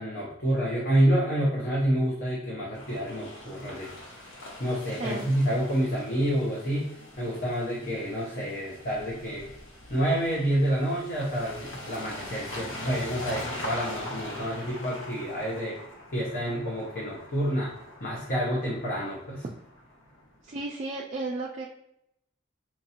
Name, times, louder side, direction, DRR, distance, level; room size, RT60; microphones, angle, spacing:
voice 1, 0.0-3.9 4.6-6.8 7.2-9.5 9.9-15.8 16.1-17.7 18.0-19.4, equal, 45° left, -5 dB, 0.9 m, -28 dB
sound 1, 2.7-20.4, left 1 dB, 85° left, 1.0 m, -42 dB
voice 2, 4.9-5.3 20.4-21.7, right 2 dB, 35° right, -2 dB, 0.4 m, -33 dB
4.5 x 2.5 x 2.8 m, 0.79 s
head